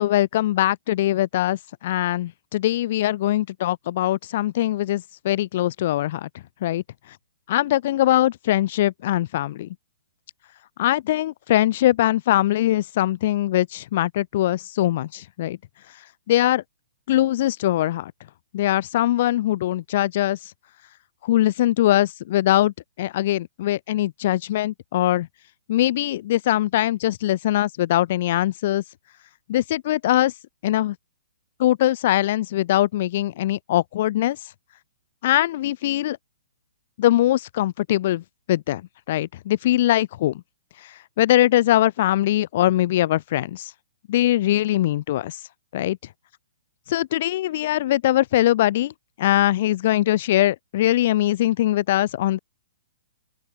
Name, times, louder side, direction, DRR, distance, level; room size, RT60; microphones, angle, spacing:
voice 1, 0.0-6.3 6.6-6.8 7.5-9.7 10.8-15.6 16.3-16.6 17.1-18.1 18.5-20.4 21.2-25.3 25.7-28.8 29.5-30.3 30.6-31.0 31.6-34.4 35.2-36.2 37.0-38.2 38.5-38.8 39.1-40.3 41.2-43.7 44.1-45.4 45.7-46.0 46.9-48.9 49.2-52.4, left 14 dB, 50° left, 0.7 m, -21 dB
open air
hypercardioid pair, 130°, 0 cm